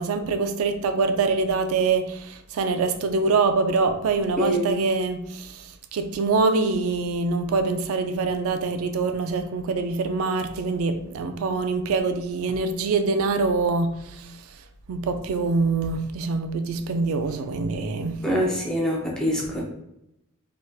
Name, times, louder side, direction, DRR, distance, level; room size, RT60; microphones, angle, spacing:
voice 1, 0.0-18.2 19.4-19.5, right 4 dB, 75° right, 0.3 m, -25 dB
voice 2, 18.2-19.6, equal, 5° left, 0.5 m, -24 dB
3.3 x 2.7 x 2.3 m
head